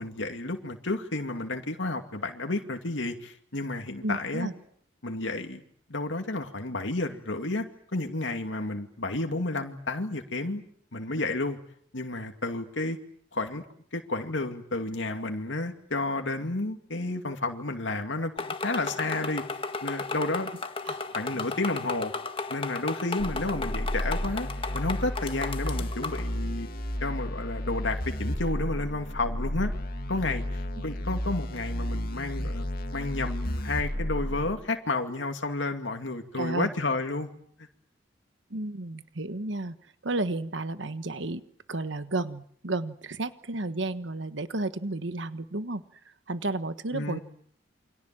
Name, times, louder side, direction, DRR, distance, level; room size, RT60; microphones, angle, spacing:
voice 1, 0.0-4.5 5.0-5.6 5.9-7.7 7.9-10.6 10.9-11.6 11.9-13.0 13.3-13.6 13.9-19.4 19.8-20.5 21.1-22.1 22.5-24.5 24.7-26.7 27.0-29.7 30.1-32.7 32.9-37.3 46.9-47.2, left 2 dB, 80° left, 5 dB, 2.4 m, -31 dB
voice 2, 4.0-4.5 20.8-21.0 36.3-36.7 38.5-39.8 40.0-41.4 41.7-45.8 46.3-47.2, right 2 dB, 75° right, 11 dB, 1.4 m, -32 dB
sound 1, 18.4-26.3, left 4 dB, 30° left, 1.8 m, -35 dB
sound 2, 23.2-34.5, equal, 55° left, 2.3 m, -32 dB
29.0 x 25.5 x 7.6 m, 0.65 s
head